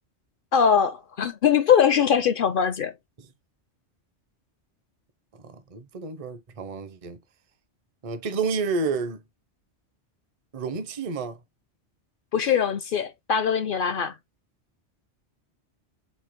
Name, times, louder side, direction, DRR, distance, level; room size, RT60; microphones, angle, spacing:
voice 1, 0.5-2.9 12.3-14.1, left 7 dB, 60° left, 0.6 m, -22 dB
voice 2, 5.3-7.2 8.0-9.2 10.5-11.4, right 4 dB, 40° right, 0.6 m, -30 dB
4.3 x 3.1 x 3.5 m
omnidirectional pair, 1.2 m